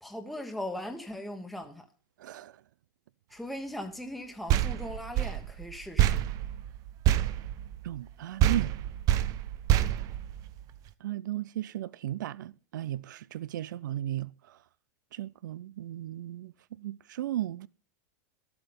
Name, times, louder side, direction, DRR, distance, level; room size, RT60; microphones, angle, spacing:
voice 1, 0.0-1.9 3.3-6.2, left 1 dB, ahead, 1.2 m, -39 dB
voice 2, 2.2-2.6 7.8-8.8 11.0-14.6 15.1-17.7, right 12 dB, 85° right, 0.5 m, -35 dB
sound 1, 4.5-8.1 8.4-10.9, right 12 dB, 35° right, 0.6 m, -27 dB
12.0 x 7.8 x 5.3 m
supercardioid pair, 140°, 10 cm